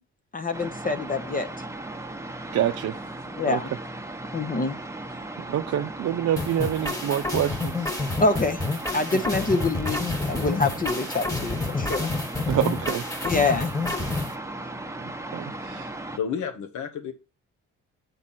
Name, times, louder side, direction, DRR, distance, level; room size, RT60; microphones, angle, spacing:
voice 1, 0.3-1.7 3.4-3.7 4.3-4.8 8.2-8.6 8.9-12.1 13.2-13.7, left 3 dB, 30° left, 0.8 m, -26 dB
sound 1, 0.5-16.2, right 2 dB, 10° right, 1.0 m, -37 dB
voice 2, 2.5-3.0 3.5-3.6 5.5-7.9 12.5-13.0 15.0-15.9, right 11 dB, 60° right, 0.5 m, -27 dB
sound 2, 6.4-14.3, left 3 dB, 10° left, 1.4 m, -29 dB
voice 3, 16.1-17.1, left 7 dB, 85° left, 1.2 m, -30 dB
7.3 x 5.3 x 4.2 m
cardioid pair, 70°, 29 cm